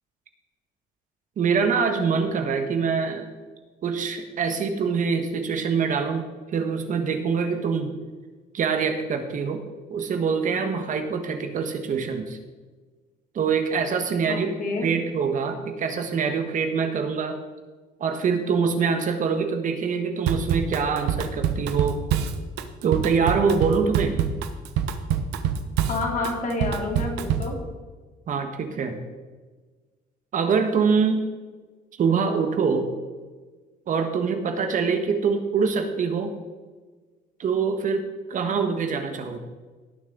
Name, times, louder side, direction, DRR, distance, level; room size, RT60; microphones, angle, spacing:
voice 1, 1.4-3.3 3.8-7.9 8.5-9.6 9.9-12.4 13.3-14.5 14.8-17.4 18.0-22.0 22.8-24.2 28.3-29.0 30.3-31.2 32.0-32.9 33.9-36.3 37.4-39.4, right 5 dB, 50° right, 6 dB, 1.5 m, -24 dB
voice 2, 14.3-14.9 25.9-27.6, left 2 dB, 50° left, 1 dB, 2.9 m, -28 dB
Drum kit / Drum, 20.3-27.6, right 8 dB, 90° right, 1.0 m, -26 dB
18.5 x 6.5 x 4.0 m, 1.3 s
cardioid pair, 110°, 17 cm